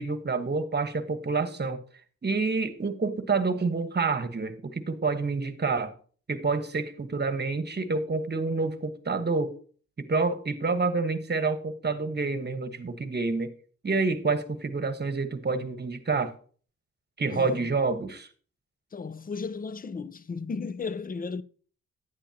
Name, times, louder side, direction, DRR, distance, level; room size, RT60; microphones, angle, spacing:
voice 1, 0.0-1.8 2.2-5.9 6.3-9.5 10.0-13.5 13.8-16.3 17.2-18.3, right 4 dB, 35° right, 1.2 m, -28 dB
voice 2, 17.3-17.7 18.9-21.4, left 4 dB, 30° left, 0.5 m, -35 dB
10.0 x 10.0 x 2.8 m
cardioid pair, 80°, 30 cm